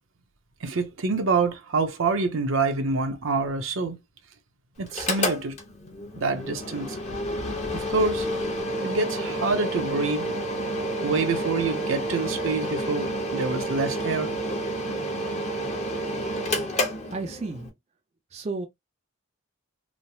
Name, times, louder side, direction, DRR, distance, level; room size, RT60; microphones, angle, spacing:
voice 1, 0.6-4.0 4.8-5.6 6.2-7.0 7.7-8.3 8.8-10.3 11.0-14.3, right 4 dB, 70° right, 0.6 m, -26 dB
Mechanical fan, 4.9-17.7, equal, 35° left, 0.9 m, -29 dB
voice 2, 17.1-17.7 18.3-18.7, right 3 dB, 35° right, 0.4 m, -32 dB
3.1 x 2.0 x 2.7 m
head